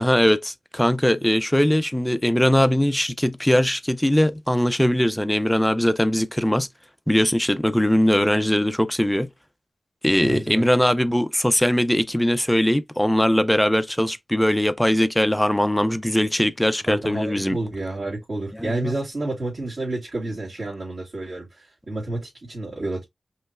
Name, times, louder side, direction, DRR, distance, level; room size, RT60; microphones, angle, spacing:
voice 1, 0.0-6.7 7.1-9.3 10.0-17.6 18.6-18.9, equal, 5° left, 0.6 m, -20 dB
voice 2, 10.2-10.7 16.9-23.0, right 2 dB, 55° right, 2.7 m, -30 dB
5.4 x 3.2 x 2.2 m
wide cardioid pair, 95°, 0 cm